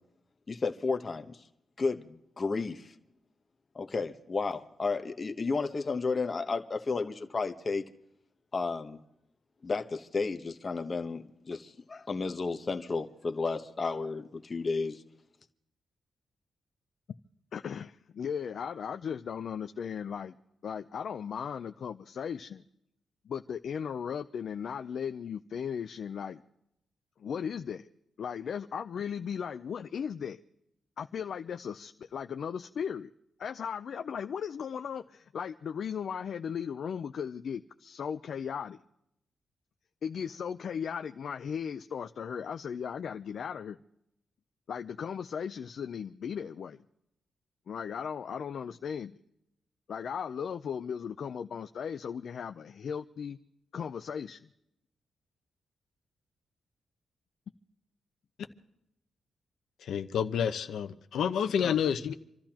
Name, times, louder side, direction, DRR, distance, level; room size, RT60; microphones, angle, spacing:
voice 1, 0.5-1.4 1.8-2.9 3.7-7.9 8.5-9.0 9.6-15.0, left 4 dB, 30° left, 1.0 m, -32 dB
voice 2, 17.5-20.3 20.6-22.6 23.2-26.4 27.2-27.9 28.2-30.4 31.0-33.1 33.4-38.8 40.0-43.8 44.7-46.8 47.7-49.2 49.9-53.4 53.7-54.5 61.6-62.1, left 7 dB, 55° left, 0.5 m, -37 dB
voice 3, 59.8-62.1, left 8 dB, 80° left, 0.9 m, -29 dB
27.5 x 14.0 x 2.9 m
wide cardioid pair, 155°, 0 cm